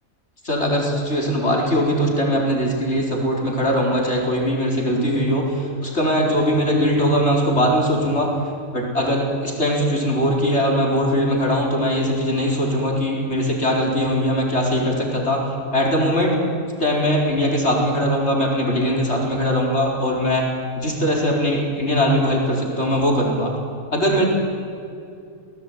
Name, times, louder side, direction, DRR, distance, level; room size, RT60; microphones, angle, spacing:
voice 1, 0.4-8.3 8.7-15.5 15.7-16.4 16.8-20.5 20.7-23.5 23.9-24.2, equal, 50° left, 0 dB, 4.9 m, -20 dB
27.5 x 19.0 x 9.5 m, 2.5 s
omnidirectional pair, 1.5 m